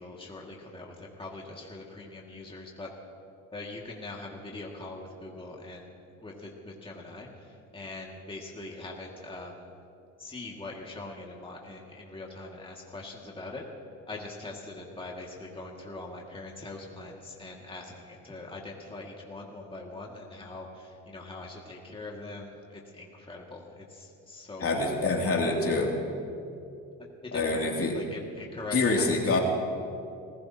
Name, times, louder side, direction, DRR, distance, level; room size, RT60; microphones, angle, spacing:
voice 1, 0.0-2.9 3.5-5.9 6.2-9.7 10.2-13.7 14.1-24.9 27.2-29.4, left 2 dB, 15° left, -2 dB, 2.1 m, -42 dB
voice 2, 24.6-25.9 27.3-28.0 28.7-29.4, left 3 dB, 45° left, 0 dB, 2.7 m, -26 dB
26.5 x 15.5 x 2.9 m, 2.6 s
supercardioid pair, 70°, 33 cm